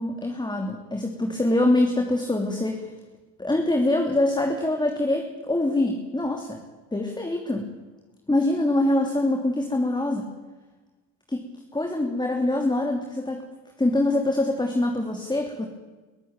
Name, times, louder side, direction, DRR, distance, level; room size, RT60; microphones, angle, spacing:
voice 1, 0.0-2.8 3.4-6.6 6.9-7.6 8.3-10.3 11.3-11.4 11.7-13.4 13.8-15.7, left 1 dB, 10° left, 3 dB, 3.0 m, -24 dB
23.0 x 14.0 x 9.0 m, 1.3 s
supercardioid pair, 75°, 39 cm